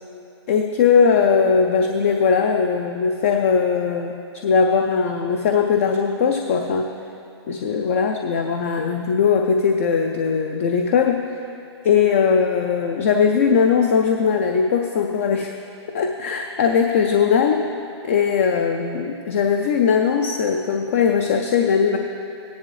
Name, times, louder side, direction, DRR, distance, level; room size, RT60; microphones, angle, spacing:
voice 1, 0.5-4.2 4.4-6.9 7.5-11.2 11.8-15.5 15.9-17.6 18.0-22.0, left 6 dB, 30° left, 4 dB, 0.4 m, -19 dB
16.5 x 10.0 x 3.2 m, 2.7 s
hypercardioid pair, 160°, 15 cm